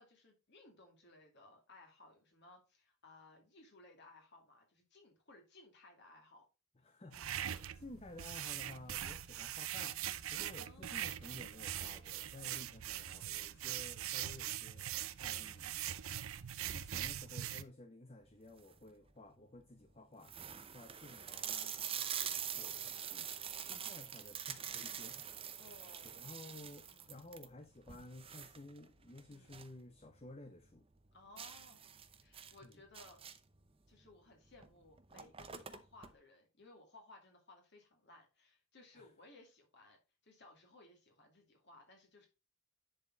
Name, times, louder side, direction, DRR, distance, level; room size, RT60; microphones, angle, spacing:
voice 1, 0.0-6.4 10.5-11.1 25.6-26.3 26.9-27.3 29.3-29.6 31.1-31.8 32.2-33.2 33.9-42.3, left 2 dB, 50° left, 2.3 m, -61 dB
voice 2, 6.8-10.0 10.3-15.8 16.7-20.3 20.7-22.1 22.5-23.3 23.6-25.2 26.0-30.8 32.6-32.8 38.9-39.1, left 2 dB, 30° left, 0.7 m, -54 dB
sound 1, 7.1-17.6, right 11 dB, 75° right, 0.6 m, -42 dB
sound 2, 18.4-18.9 19.5-19.6 19.8-19.9 20.2-29.8 30.1-30.2 30.6-30.7 31.4-33.6 34.5-34.7 34.9-36.1, right 8 dB, 25° right, 0.6 m, -44 dB
10.0 x 4.4 x 3.9 m
head